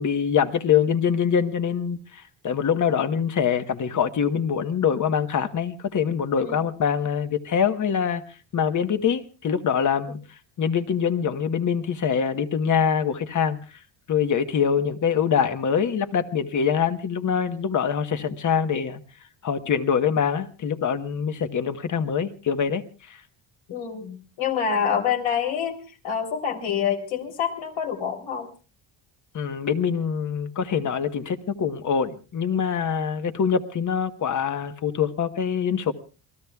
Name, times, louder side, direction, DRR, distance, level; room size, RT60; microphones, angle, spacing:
voice 1, 0.0-8.2 8.5-10.2 10.6-13.6 14.1-19.0 19.4-23.2 29.3-35.9, left 7 dB, 40° left, 1.1 m, -24 dB
voice 2, 23.7-28.5, left 7 dB, 75° left, 3.6 m, -27 dB
28.0 x 19.0 x 2.3 m
cardioid pair, 125°, 47 cm